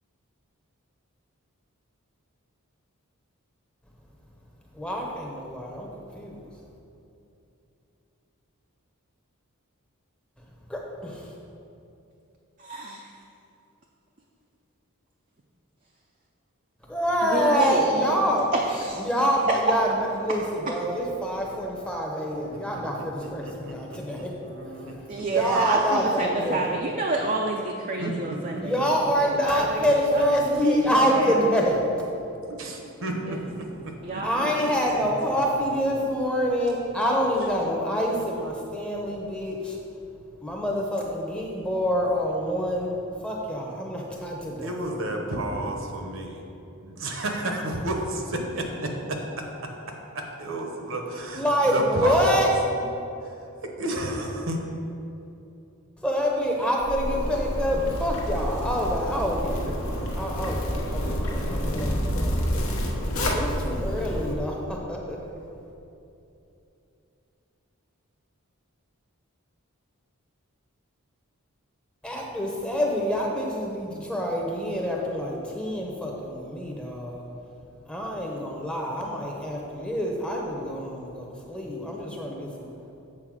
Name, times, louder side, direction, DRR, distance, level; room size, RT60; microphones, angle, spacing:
voice 1, 4.8-5.9 6.1-6.4 10.7-11.2 16.9-18.5 19.0-24.3 25.2-26.6 28.5-31.8 34.2-39.8 40.4-43.0 43.2-44.9 51.3-52.5 52.8-52.9 56.0-59.7 60.2-62.3 63.3-65.2 72.0-77.2 77.9-82.9, equal, 5° left, -1 dB, 0.8 m, -26 dB
voice 2, 12.6-13.1 17.2-18.2 18.5-19.0 19.5-19.6 20.7-20.8 25.1-28.8 29.2-30.3 30.6-31.5 33.3-33.4 34.0-34.5 34.9-35.0, right 3 dB, 35° right, 0 dB, 0.5 m, -29 dB
voice 3, 22.7-25.2 26.3-26.4 26.7-26.9 28.0-28.6 29.0-29.7 30.7-31.4 32.5-34.7 35.0-35.1 44.6-46.4 46.8-49.2 50.1-52.5 53.8-54.6, right 1 dB, 60° right, 2 dB, 0.9 m, -32 dB
Zipper (clothing), 56.8-64.3, equal, 70° left, 1.0 m, -28 dB
7.5 x 4.3 x 6.2 m, 2.8 s
head